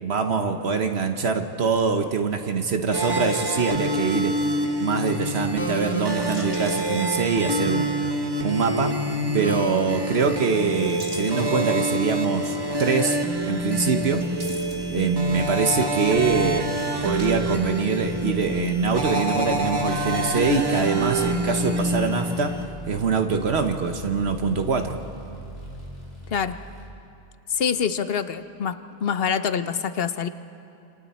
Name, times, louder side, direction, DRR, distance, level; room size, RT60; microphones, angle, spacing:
voice 1, 0.0-4.4 4.8-7.9 8.4-9.0 9.3-13.2 13.4-14.3 14.9-22.6 22.9-25.0, right 5 dB, 75° right, 6 dB, 1.3 m, -24 dB
sound 1, 2.9-22.7, right 1 dB, 25° right, 1.2 m, -26 dB
sound 2, 4.2-5.4 5.9-7.9 8.2-8.9 9.7-10.2 10.6-12.2 12.8-12.9 14.1-15.4 15.7-17.3 17.6-18.3, right 2 dB, 50° right, 2.3 m, -44 dB
sound 3, 13.1-26.9, equal, 45° left, 4.4 m, -42 dB
voice 2, 26.3-26.6 27.5-30.3, left 7 dB, 65° left, 11 dB, 1.0 m, -26 dB
28.0 x 27.5 x 4.3 m, 2.8 s
omnidirectional pair, 1.1 m